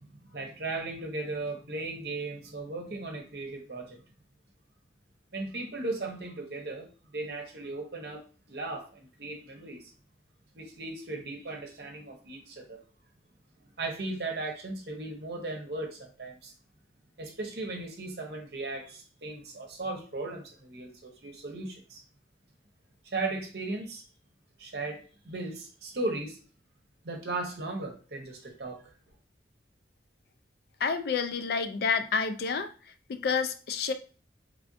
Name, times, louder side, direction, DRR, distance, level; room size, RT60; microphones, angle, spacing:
voice 1, 0.0-4.0 5.3-8.2 8.5-9.9 10.5-12.8 13.8-16.5 17.2-22.0 23.1-24.0 24.6-26.4 27.0-28.9, right 2 dB, 65° right, 0.8 m, -37 dB
voice 2, 30.8-32.7 33.1-33.9, left 5 dB, 60° left, 0.3 m, -29 dB
3.4 x 2.4 x 2.5 m
head